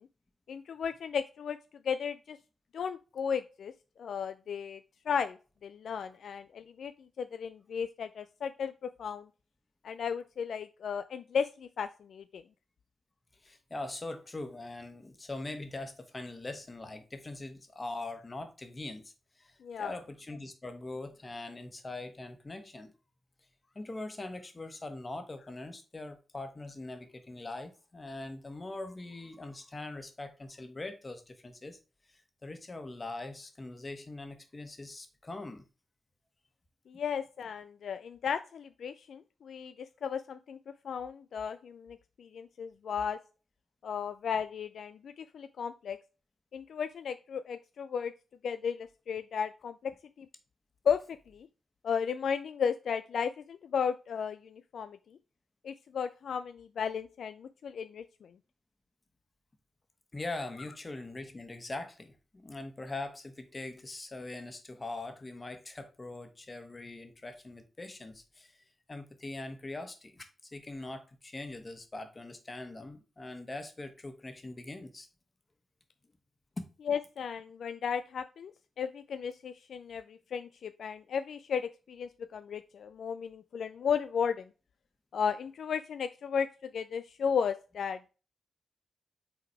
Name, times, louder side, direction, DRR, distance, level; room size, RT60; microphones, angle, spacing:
voice 1, 0.5-1.6 1.8-2.4 2.7-3.7 4.0-4.8 5.1-9.3 9.8-12.4 19.6-19.9 36.9-40.6 40.8-43.2 43.8-46.0 46.5-48.1 48.4-50.3 50.9-51.5 51.8-55.0 55.6-58.3 76.9-78.5 78.8-84.5 85.1-86.5 86.7-88.0, left 7 dB, 75° left, 0.3 m, -34 dB
voice 2, 13.4-22.9 23.7-31.8 32.1-35.6 60.1-75.1 76.6-76.7, left 2 dB, 35° left, 1.5 m, -42 dB
5.9 x 3.8 x 4.7 m
supercardioid pair, 50°, 0 cm